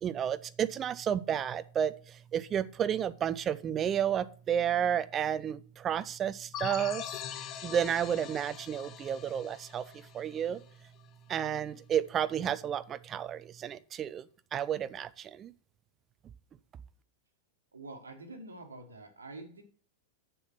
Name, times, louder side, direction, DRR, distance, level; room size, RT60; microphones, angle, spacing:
voice 1, 0.0-7.0 7.6-10.6 11.3-14.3 14.5-15.5, right 9 dB, 25° right, 0.4 m, -31 dB
sound 1, 6.5-11.0, left 9 dB, 35° left, 0.9 m, -42 dB
voice 2, 17.7-19.6, right 2 dB, 75° right, 1.4 m, -46 dB
7.1 x 6.9 x 5.7 m
figure-of-eight pair, 90°, 0 cm